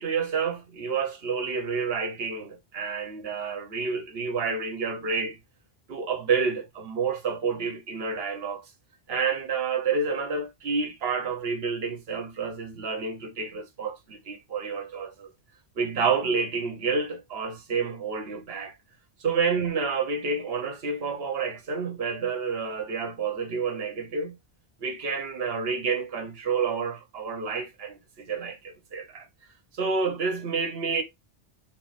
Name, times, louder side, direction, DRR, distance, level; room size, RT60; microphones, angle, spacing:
voice 1, 0.0-5.4 5.9-8.7 9.1-15.3 15.8-18.7 19.2-24.4 24.8-29.3 29.8-31.0, right 5 dB, 65° right, 1.1 m, -29 dB
4.5 x 2.0 x 4.1 m
omnidirectional pair, 1.1 m